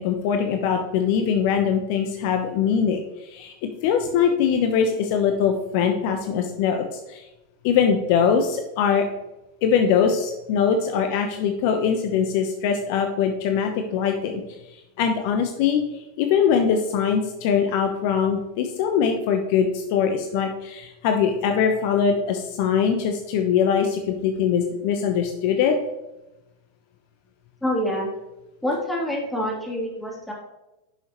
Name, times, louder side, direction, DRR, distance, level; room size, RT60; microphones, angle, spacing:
voice 1, 0.0-3.5 3.8-7.2 7.6-9.0 9.6-14.4 15.0-25.7, left 7 dB, 55° left, 5 dB, 0.9 m, -22 dB
voice 2, 27.6-28.1 28.6-30.3, equal, 5° left, -3 dB, 3.1 m, -26 dB
10.5 x 6.4 x 3.1 m, 0.96 s
hypercardioid pair, 95°, 0 cm